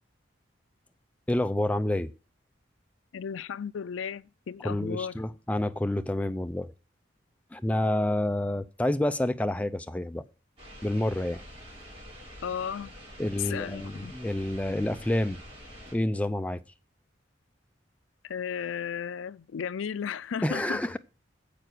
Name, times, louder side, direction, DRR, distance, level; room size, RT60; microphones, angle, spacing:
voice 1, 1.3-2.1 4.6-6.7 7.5-10.2 10.8-11.4 13.2-15.4 15.9-16.6 20.4-21.0, left 1 dB, 5° left, 0.4 m, -28 dB
voice 2, 3.1-5.2 12.4-12.9 13.4-14.1 18.2-21.0, left 7 dB, 80° left, 0.4 m, -34 dB
sound 1, 10.6-15.9, equal, 30° right, 6.3 m, -47 dB
7.8 x 6.9 x 6.1 m
head